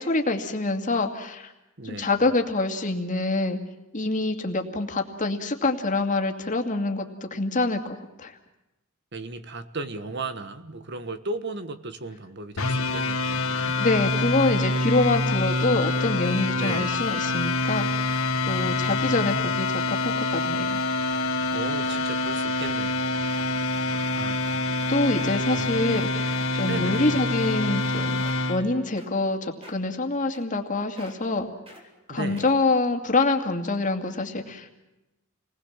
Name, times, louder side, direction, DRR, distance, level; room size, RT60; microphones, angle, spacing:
voice 1, 0.0-1.5 1.8-3.6 3.9-8.4 13.8-18.0 18.4-20.8 24.1-24.3 24.9-31.5 32.1-34.7, left 2 dB, 40° left, 4 dB, 2.4 m, -26 dB
voice 2, 1.8-2.2 9.1-13.8 16.5-17.1 18.6-19.6 21.5-23.3 23.9-24.6 25.5-25.8 26.6-27.1 32.1-32.5, right 3 dB, 55° right, 11 dB, 1.4 m, -36 dB
sound 1, 12.6-28.6, left 2 dB, 85° left, 2.2 m, -26 dB
sound 2, 26.9-27.2 27.6-27.9 28.2-28.4 29.0-29.3 29.6-29.9 30.3-30.7 31.0-31.3 31.7-31.8 32.4-32.7 33.3-33.4, equal, 25° right, 4.5 m, -47 dB
28.5 x 20.5 x 7.3 m, 1.0 s
head